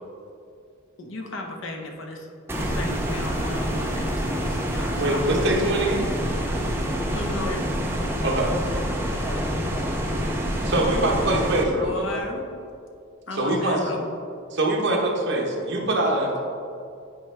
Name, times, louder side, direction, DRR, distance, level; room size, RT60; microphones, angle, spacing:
voice 1, 1.0-2.3 2.6-5.3 7.1-7.7 11.8-12.5 13.3-14.1, left 2 dB, 65° left, 3 dB, 0.8 m, -35 dB
sound 1, 2.5-11.6, equal, 10° right, 0.5 m, -27 dB
voice 2, 4.6-6.1 8.2-8.5 10.6-12.2 13.4-13.8 14.5-16.3, right 1 dB, 55° right, -1 dB, 1.0 m, -24 dB
voice 3, 9.2-10.2 16.0-16.4, equal, 15° left, -2 dB, 0.9 m, -38 dB
8.8 x 4.5 x 3.4 m, 2.4 s
head